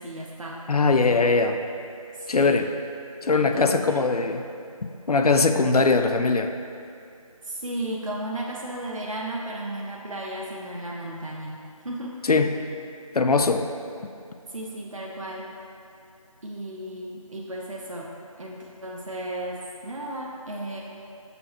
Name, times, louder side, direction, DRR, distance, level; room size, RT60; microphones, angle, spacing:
voice 1, 0.0-0.6 1.0-1.2 2.1-2.5 3.3-4.1 7.4-11.5 11.8-12.2 14.5-15.5 16.4-18.1 18.4-20.8, right 1 dB, 60° right, -3 dB, 0.7 m, -34 dB
voice 2, 0.7-1.6 2.3-2.7 3.2-4.4 5.1-6.5 12.3-12.5 13.1-13.7, left 4 dB, 85° left, 7 dB, 0.5 m, -21 dB
6.9 x 5.9 x 2.9 m, 2.5 s
figure-of-eight pair, 180°, 19 cm